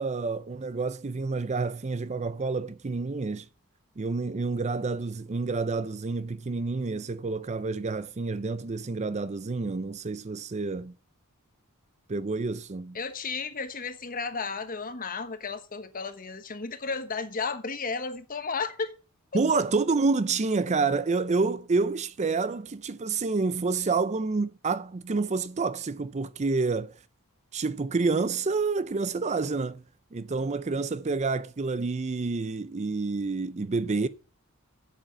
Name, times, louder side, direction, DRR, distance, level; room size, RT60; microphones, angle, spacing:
voice 1, 0.0-3.5 4.0-10.9 12.1-13.0 19.3-26.9 27.5-29.8 30.1-34.1, right 4 dB, 30° right, 0.5 m, -28 dB
voice 2, 12.9-18.9 19.5-19.6, left 4 dB, 40° left, 1.2 m, -33 dB
8.5 x 7.9 x 7.3 m
head